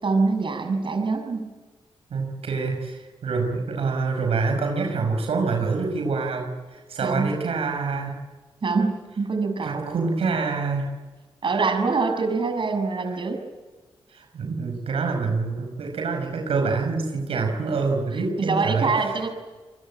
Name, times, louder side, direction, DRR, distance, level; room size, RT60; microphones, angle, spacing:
voice 1, 0.0-1.5 7.0-7.3 8.6-9.8 11.4-13.4 18.4-19.3, right 4 dB, 60° right, 5 dB, 6.5 m, -24 dB
voice 2, 2.1-8.1 9.6-10.9 14.1-18.9, right 4 dB, 90° right, 3 dB, 5.7 m, -26 dB
28.5 x 21.5 x 9.0 m, 1.3 s
cardioid pair, 60°, 10 cm